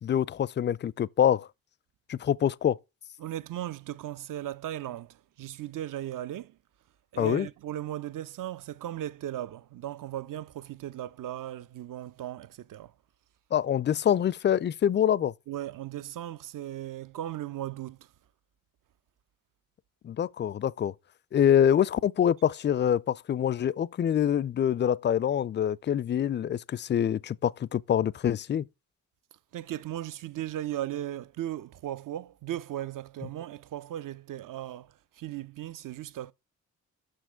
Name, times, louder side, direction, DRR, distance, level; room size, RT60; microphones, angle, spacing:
voice 1, 0.0-1.5 2.1-2.8 7.2-7.5 13.5-15.3 20.0-20.9 21.3-28.6, left 9 dB, 30° left, 0.4 m, -25 dB
voice 2, 3.2-6.6 7.1-12.9 15.5-18.1 29.5-36.3, right 12 dB, 55° right, 0.7 m, -37 dB
6.3 x 6.3 x 4.5 m
hypercardioid pair, 40°, 39 cm